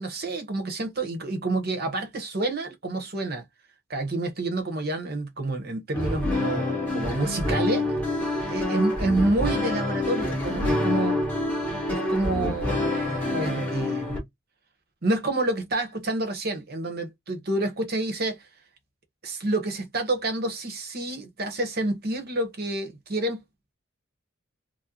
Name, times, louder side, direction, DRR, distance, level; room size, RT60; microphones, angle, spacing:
voice 1, 0.0-3.4 3.9-7.8 8.5-11.2 11.9-14.2 15.0-18.4 19.2-23.4, right 2 dB, 45° right, 1.0 m, -28 dB
sound 1, 5.9-14.2, left 2 dB, 5° left, 1.4 m, -27 dB
3.7 x 2.2 x 2.8 m
head